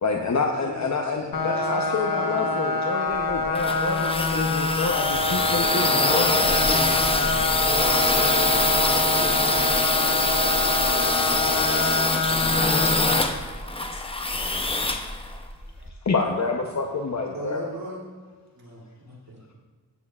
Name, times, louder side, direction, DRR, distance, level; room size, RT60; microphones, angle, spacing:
voice 1, 0.0-6.9 13.6-14.3 16.0-17.6, left 4 dB, 50° left, 2 dB, 0.8 m, -28 dB
voice 2, 0.6-2.6 15.0-15.1 17.3-18.0 18.5-19.4, right 1 dB, 75° right, -4 dB, 2.9 m, -40 dB
sound 1, 1.3-13.2, left 2 dB, 75° left, 1.1 m, -26 dB
sound 2, 3.1-15.9, left 2 dB, 15° left, 0.6 m, -24 dB
voice 3, 13.4-13.8 15.8-15.9, right 2 dB, 30° right, 4 dB, 1.1 m, -54 dB
13.5 x 8.7 x 2.4 m, 1.4 s
wide cardioid pair, 100°, 37 cm